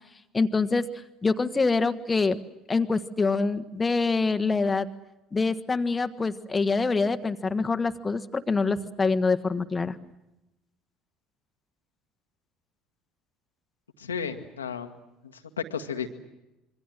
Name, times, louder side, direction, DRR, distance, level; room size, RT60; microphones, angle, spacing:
voice 1, 0.3-0.9 1.2-2.4 2.7-4.9 5.3-9.9, left 4 dB, 20° left, 9 dB, 1.4 m, -25 dB
voice 2, 14.0-14.9 15.3-16.1, left 6 dB, 80° left, 7 dB, 1.7 m, -33 dB
26.5 x 24.0 x 7.7 m, 0.93 s
figure-of-eight pair, 60°, 0 cm